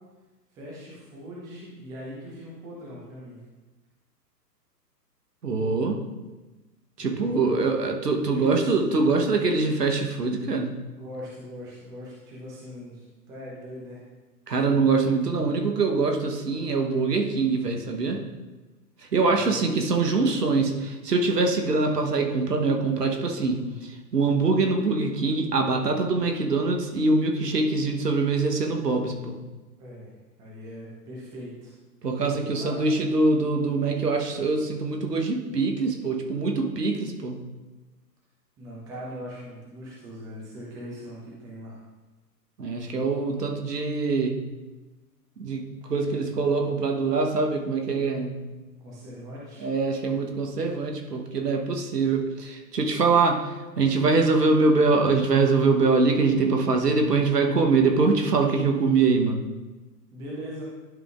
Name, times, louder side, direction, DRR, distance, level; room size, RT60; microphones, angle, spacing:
voice 1, 0.5-3.4 7.0-7.8 8.1-8.9 9.1-9.2 10.9-14.0 19.3-19.7 29.8-30.1 30.4-31.7 32.5-32.8 38.6-41.8 48.8-49.7 60.1-60.6, equal, 5° right, -5 dB, 0.7 m, -40 dB
voice 2, 5.4-6.0 7.0-10.8 14.5-18.2 19.1-29.4 32.0-37.4 42.6-44.4 45.4-48.4 49.6-59.4, right 3 dB, 70° right, 3 dB, 1.2 m, -24 dB
11.0 x 5.1 x 2.5 m, 1.2 s
figure-of-eight pair, 120°, 50 cm